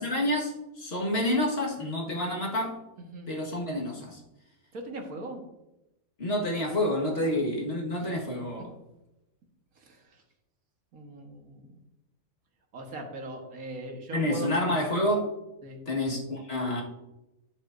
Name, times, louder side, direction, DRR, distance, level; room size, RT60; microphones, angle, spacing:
voice 1, 0.0-2.8 3.3-4.2 6.2-8.7 14.1-15.3 15.9-16.8, left 1 dB, 45° left, -1 dB, 1.9 m, -28 dB
voice 2, 4.7-5.4 7.2-7.4 8.0-8.1 9.8-10.2 10.9-11.8 12.7-14.7 15.6-15.8, right 1 dB, 80° right, 2 dB, 1.9 m, -40 dB
10.5 x 7.8 x 2.6 m, 0.93 s
omnidirectional pair, 1.5 m